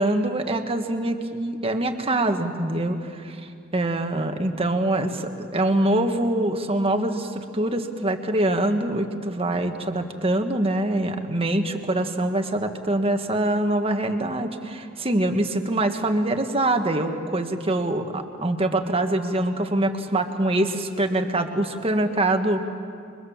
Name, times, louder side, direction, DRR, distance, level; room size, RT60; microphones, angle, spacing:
voice 1, 0.0-22.6, right 1 dB, 30° right, 6 dB, 1.6 m, -24 dB
29.0 x 24.0 x 7.3 m, 2.4 s
head